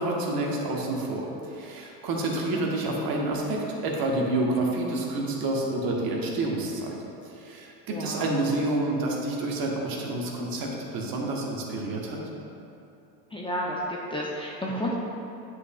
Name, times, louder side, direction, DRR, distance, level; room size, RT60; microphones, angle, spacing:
voice 1, 0.0-6.9 7.2-12.2, right 2 dB, 45° right, -1 dB, 1.4 m, -29 dB
voice 2, 7.9-8.3 13.3-14.9, equal, 10° left, -4 dB, 0.6 m, -31 dB
9.4 x 5.8 x 2.4 m, 2.7 s
hypercardioid pair, 95°, 49 cm